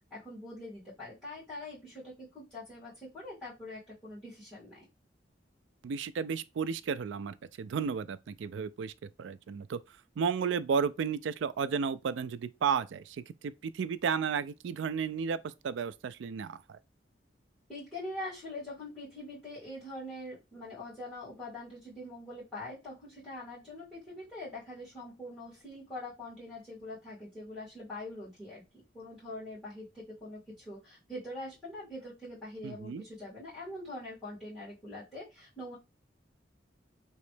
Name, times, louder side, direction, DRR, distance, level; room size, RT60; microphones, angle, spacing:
voice 1, 0.1-4.9 17.7-35.8, left 1 dB, 10° left, 2.1 m, -43 dB
voice 2, 5.8-9.8 10.2-16.8 32.6-33.0, right 6 dB, 75° right, 0.3 m, -33 dB
3.1 x 3.0 x 3.2 m
head